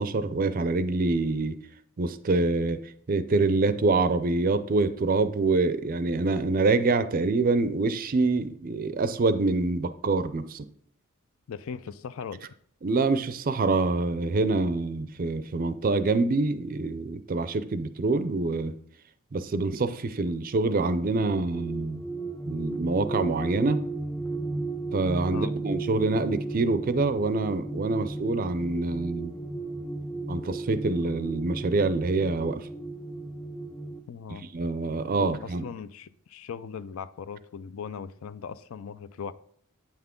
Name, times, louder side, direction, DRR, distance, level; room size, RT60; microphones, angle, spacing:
voice 1, 0.0-1.6 2.0-10.7 12.8-18.7 19.3-22.1 22.5-23.8 24.9-29.3 30.3-32.7 34.5-35.6, right 3 dB, 40° right, 0.4 m, -26 dB
voice 2, 11.5-12.4 25.3-25.5 34.1-34.5 35.2-39.3, left 6 dB, 65° left, 0.4 m, -38 dB
sound 1, 21.2-34.0, right 2 dB, 10° left, 0.6 m, -35 dB
8.7 x 5.9 x 3.7 m
head